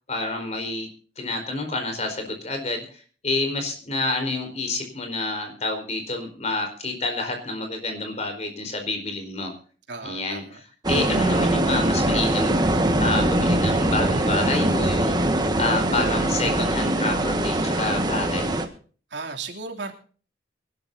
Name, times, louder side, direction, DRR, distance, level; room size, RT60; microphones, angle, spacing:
voice 1, 0.1-0.9 1.2-9.5 10.0-15.2 15.6-18.4, left 2 dB, 40° left, 5 dB, 4.4 m, -28 dB
voice 2, 9.9-10.6 19.1-19.9, right 4 dB, 80° right, 2 dB, 3.0 m, -35 dB
sound 1, 10.8-18.7, right 1 dB, 25° right, 1.7 m, -22 dB
24.0 x 12.5 x 2.8 m, 0.41 s
head